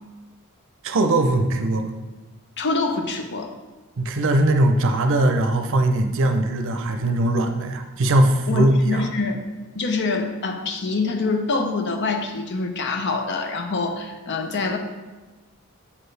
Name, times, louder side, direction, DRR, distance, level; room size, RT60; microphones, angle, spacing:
voice 1, 0.8-1.9 4.0-9.1, right 1 dB, 60° right, 6 dB, 0.6 m, -20 dB
voice 2, 2.6-3.5 8.5-9.4 9.7-14.8, left 3 dB, 55° left, 5 dB, 0.7 m, -25 dB
7.3 x 4.6 x 3.3 m, 1.2 s
head